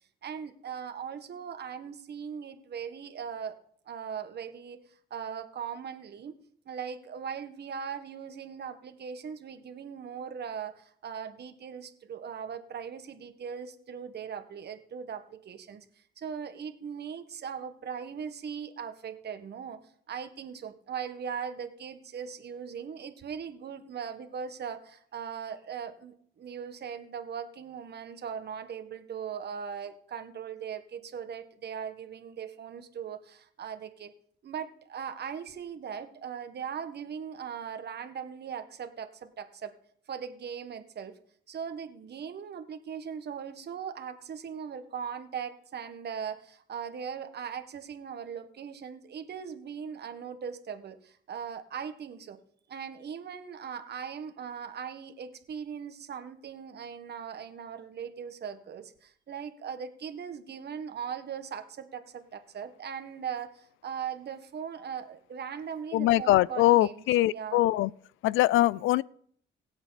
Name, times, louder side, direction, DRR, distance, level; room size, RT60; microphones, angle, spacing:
voice 1, 0.2-3.6 3.9-4.8 5.1-6.4 6.6-15.8 16.2-19.8 20.1-34.1 34.4-39.7 40.1-41.1 41.5-52.4 52.7-67.6, right 7 dB, 55° right, 1.6 m, -39 dB
voice 2, 65.9-67.9 68.2-69.0, left 16 dB, 85° left, 0.4 m, -23 dB
23.5 x 8.0 x 4.1 m
cardioid pair, 90°, 20 cm